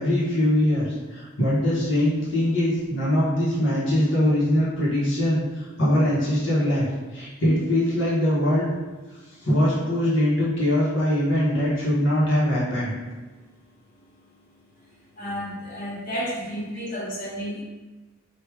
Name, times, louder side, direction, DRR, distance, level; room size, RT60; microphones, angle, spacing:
voice 1, 0.0-6.9 7.1-8.7 9.4-12.9, left 1 dB, 60° left, -8 dB, 1.2 m, -22 dB
voice 2, 15.2-17.6, equal, 40° left, -9 dB, 1.2 m, -31 dB
4.7 x 2.6 x 3.4 m, 1.2 s
head